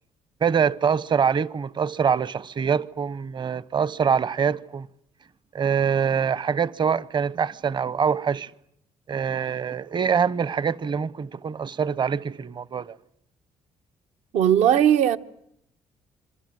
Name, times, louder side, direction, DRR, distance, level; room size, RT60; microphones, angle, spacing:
voice 1, 0.4-4.9 5.5-8.5 9.1-13.0, right 7 dB, 40° right, 1.0 m, -24 dB
voice 2, 14.3-15.2, right 10 dB, 75° right, 1.2 m, -18 dB
26.5 x 23.5 x 7.8 m
supercardioid pair, 75°, 12 cm